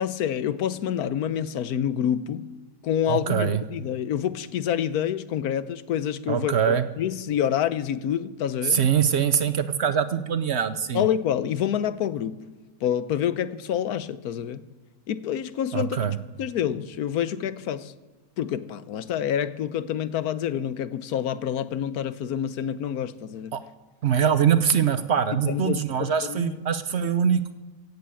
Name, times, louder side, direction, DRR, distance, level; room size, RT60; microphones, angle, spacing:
voice 1, 0.0-2.4 2.8-8.8 10.9-12.4 12.8-14.6 15.1-16.0 16.4-17.9 18.4-23.5 25.4-26.5, left 9 dB, 85° left, 1.3 m, -27 dB
voice 2, 3.1-3.6 6.3-6.9 8.6-11.0 15.7-16.2 23.5-23.6 24.0-27.5, right 8 dB, 55° right, 0.8 m, -23 dB
16.0 x 8.2 x 8.4 m
omnidirectional pair, 1.6 m